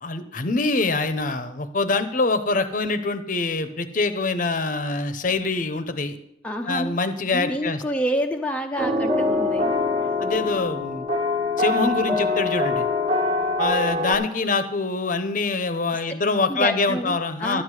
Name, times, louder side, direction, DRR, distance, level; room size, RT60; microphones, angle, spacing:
voice 1, 0.0-6.2 6.7-7.8 10.2-11.1 11.6-12.9 13.6-17.6, left 3 dB, 45° left, 10 dB, 0.8 m, -24 dB
voice 2, 6.4-7.0 7.3-9.7 16.5-17.6, equal, 5° left, 2 dB, 0.6 m, -28 dB
sound 1, 8.8-14.1, left 2 dB, 30° right, 1.5 m, -24 dB
11.5 x 9.4 x 4.8 m, 0.79 s
head